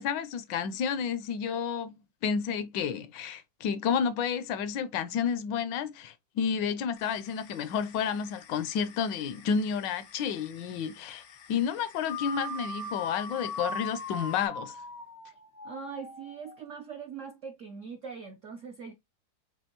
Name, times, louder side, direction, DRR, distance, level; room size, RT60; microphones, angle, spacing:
voice 1, 0.0-1.9 2.2-11.2 11.5-14.8, left 7 dB, 75° left, 1.2 m, -31 dB
sound 1, 7.0-14.5, left 8 dB, 60° left, 0.8 m, -54 dB
sound 2, 12.0-16.6, left 2 dB, 20° left, 0.4 m, -39 dB
voice 2, 15.6-18.9, right 6 dB, 75° right, 0.7 m, -42 dB
6.2 x 2.6 x 2.8 m
omnidirectional pair, 2.1 m